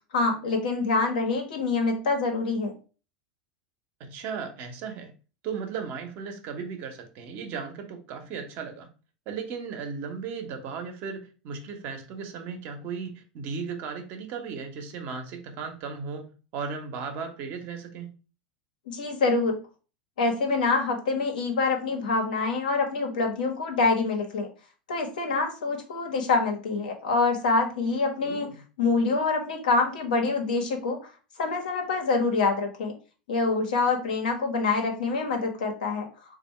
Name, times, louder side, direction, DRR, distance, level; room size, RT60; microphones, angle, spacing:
voice 1, 0.1-2.8 18.9-19.6 20.2-24.5 24.9-28.5 28.8-31.0 31.4-32.9 33.3-36.1, left 3 dB, 80° left, 1.1 m, -26 dB
voice 2, 4.0-5.1 5.4-8.9 9.3-18.1 28.2-28.4, right 5 dB, 50° right, 0.9 m, -36 dB
3.5 x 2.5 x 4.3 m
hypercardioid pair, 95°, 4 cm